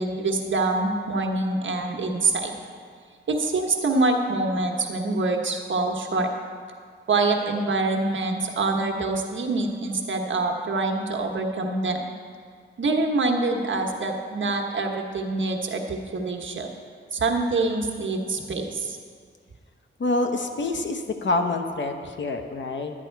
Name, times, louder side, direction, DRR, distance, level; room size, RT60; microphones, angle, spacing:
voice 1, 0.0-2.5 3.3-6.3 7.1-12.0 12.8-16.7 17.1-19.0, right 3 dB, 70° right, 2 dB, 1.1 m, -25 dB
voice 2, 20.0-22.9, left 2 dB, 65° left, 5 dB, 0.9 m, -26 dB
11.0 x 9.9 x 4.6 m, 2.1 s
wide cardioid pair, 110°, 20 cm